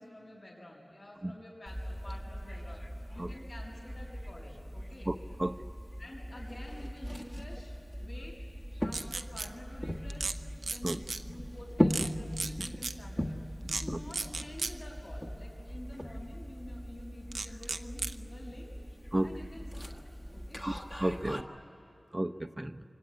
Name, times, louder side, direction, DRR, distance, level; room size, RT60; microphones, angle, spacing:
voice 1, 0.0-5.1 6.0-8.4 8.8-10.4 10.6-18.7 19.2-20.0 20.3-20.6 21.2-21.5, left 1 dB, 50° left, 6.8 m, -49 dB
sound 1, 1.7-21.4, equal, 10° left, 1.5 m, -39 dB
voice 2, 5.1-5.5 10.8-11.0 13.9-14.0 19.1-19.3 20.6-20.7 21.0-21.4 22.1-22.8, right 1 dB, 20° right, 0.8 m, -32 dB
sound 2, 8.9-9.5 10.1-10.3 10.6-11.2 11.9-12.1 12.4-12.9 13.7-13.8 14.1-14.7 17.3-18.1, right 3 dB, 85° right, 0.7 m, -35 dB
25.5 x 24.5 x 9.7 m
wide cardioid pair, 65°, 0 cm